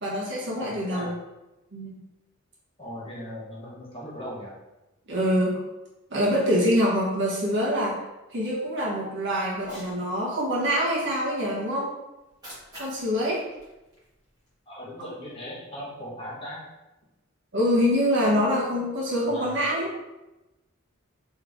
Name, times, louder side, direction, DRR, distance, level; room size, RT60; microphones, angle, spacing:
voice 1, 0.0-1.1 1.7-2.0 5.1-5.6 6.1-8.0 8.3-11.9 12.8-13.4 17.5-19.9, equal, 55° right, -5 dB, 1.2 m, -25 dB
voice 2, 0.5-1.2 2.8-4.5 14.7-16.6 19.2-19.5, equal, 25° left, -7 dB, 1.2 m, -38 dB
Cat, 9.5-10.0 12.2-14.5, equal, 20° right, 1.5 m, -45 dB
3.6 x 3.4 x 3.5 m, 1.0 s
head